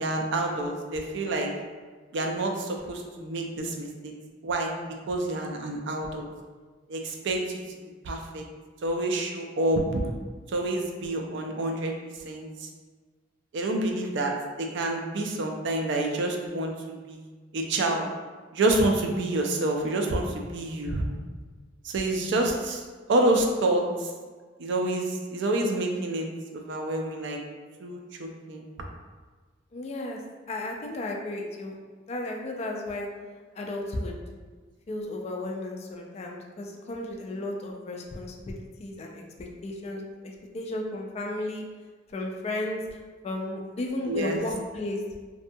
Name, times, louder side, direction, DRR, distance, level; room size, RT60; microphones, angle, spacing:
voice 1, 0.0-1.5 2.1-4.1 4.4-4.7 5.1-6.3 6.9-7.6 8.0-8.4 8.8-10.0 10.5-11.9 12.2-12.7 13.5-18.1 18.5-21.1 21.8-22.8 23.1-24.1 24.6-26.3 26.5-27.4 27.8-28.7 44.0-44.4, right 2 dB, 65° right, 2 dB, 0.4 m, -28 dB
voice 2, 29.7-30.2 30.5-31.8 32.1-33.1 33.6-34.1 34.9-41.7 42.1-42.8 43.2-45.0, left 1 dB, 35° left, 1 dB, 0.3 m, -34 dB
2.6 x 2.2 x 2.6 m, 1.4 s
head